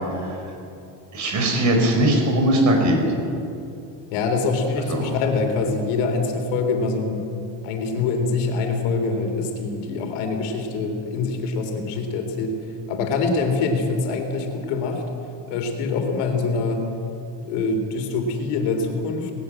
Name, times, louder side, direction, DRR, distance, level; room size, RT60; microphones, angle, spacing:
voice 1, 1.1-3.0 4.9-5.1, right 1 dB, 35° right, 3 dB, 4.7 m, -19 dB
voice 2, 4.1-7.3 7.6-12.6 12.9-15.0 15.5-16.9 17.4-19.3, left 4 dB, 80° left, 4 dB, 3.7 m, -24 dB
19.5 x 18.5 x 7.7 m, 2.6 s
cardioid pair, 165°, 48 cm